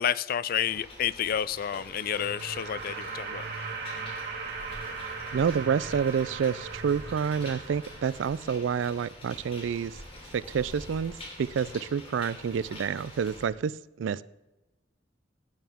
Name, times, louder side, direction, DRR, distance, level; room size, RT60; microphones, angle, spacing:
voice 1, 0.0-3.4, left 9 dB, 50° left, 0.4 m, -30 dB
sound 1, 0.6-13.4, left 1 dB, 35° left, 2.9 m, -47 dB
sound 2, 1.5-8.6, right 4 dB, 60° right, 2.2 m, -39 dB
Wind, 4.3-12.0, equal, 10° left, 2.8 m, -50 dB
voice 2, 5.3-10.0 10.3-11.1 11.4-14.2, right 7 dB, 85° right, 0.4 m, -28 dB
15.5 x 9.2 x 3.6 m
head